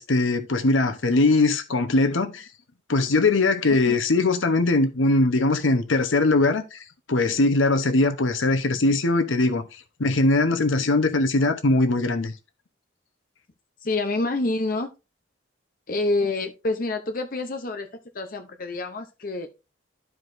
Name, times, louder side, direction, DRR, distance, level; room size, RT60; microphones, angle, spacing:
voice 1, 0.0-2.5 2.9-6.8 7.1-9.6 10.0-12.3, left 2 dB, 80° left, 0.9 m, -21 dB
voice 2, 13.8-14.9 15.9-17.9 18.1-19.5, left 2 dB, 45° left, 0.7 m, -27 dB
12.5 x 4.7 x 2.6 m
head